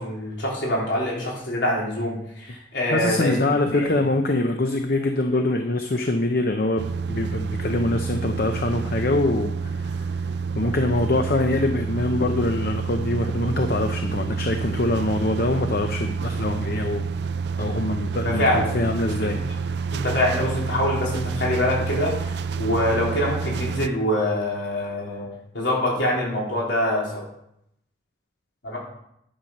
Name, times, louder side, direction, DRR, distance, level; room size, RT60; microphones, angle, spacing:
voice 1, 0.0-4.0 18.2-18.9 19.2-19.3 19.9-25.3 25.5-27.3 28.6-28.8, left 1 dB, 85° left, -4 dB, 3.8 m, -25 dB
voice 2, 2.9-10.1 10.5-17.0 17.6-19.4, left 2 dB, 55° left, 5 dB, 0.8 m, -24 dB
sound 1, 6.8-23.9, right 5 dB, 70° right, 0.5 m, -28 dB
10.5 x 7.3 x 5.4 m, 0.75 s
head